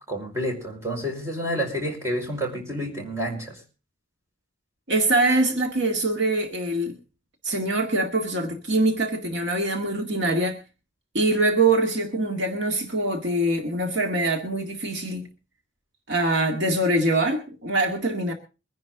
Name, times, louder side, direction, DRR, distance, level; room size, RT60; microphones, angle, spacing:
voice 1, 0.1-3.6, equal, 15° right, 0 dB, 4.8 m, -29 dB
voice 2, 4.9-7.0 7.4-10.6 11.1-15.3 16.1-18.3, right 2 dB, 65° right, 3 dB, 2.0 m, -23 dB
23.5 x 10.5 x 3.7 m, 0.33 s
head